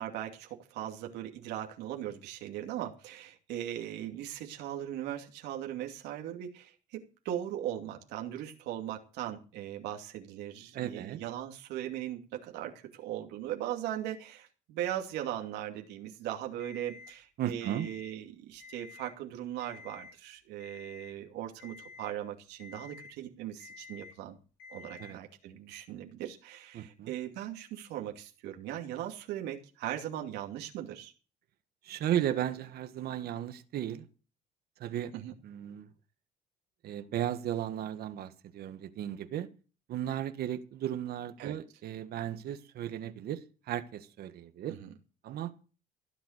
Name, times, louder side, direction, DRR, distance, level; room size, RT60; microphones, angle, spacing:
voice 1, 0.0-24.4 24.7-31.1 35.1-35.3 41.4-41.6 44.7-44.9, right 11 dB, 90° right, 2.5 m, -39 dB
voice 2, 10.7-11.2 17.4-17.9 25.0-25.2 26.7-27.1 31.8-34.1 34.8-35.1 35.4-35.9 36.8-39.5 39.9-44.7 45.2-45.5, right 11 dB, 65° right, 1.6 m, -35 dB
Alarm, 16.6-17.1 17.6-18.1 18.5-19.1 19.6-20.1 20.6-21.1 21.6-22.1 22.6-23.1 23.6-24.1 24.6-25.1, left 4 dB, 85° left, 5.7 m, -50 dB
16.0 x 8.2 x 6.5 m
cardioid pair, 110°, 17 cm